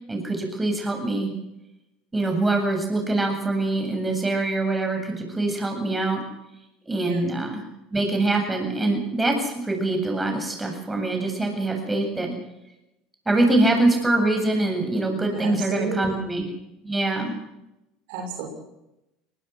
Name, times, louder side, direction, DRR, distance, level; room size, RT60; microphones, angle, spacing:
voice 1, 0.1-1.3 2.1-6.2 6.8-7.6 7.9-12.3 13.3-16.5 16.8-17.3, right 2 dB, 15° right, 3 dB, 8.0 m, -24 dB
voice 2, 15.3-16.2 18.1-18.5, right 3 dB, 75° right, 3 dB, 6.5 m, -31 dB
23.0 x 20.5 x 6.4 m, 0.91 s
supercardioid pair, 95°, 0 cm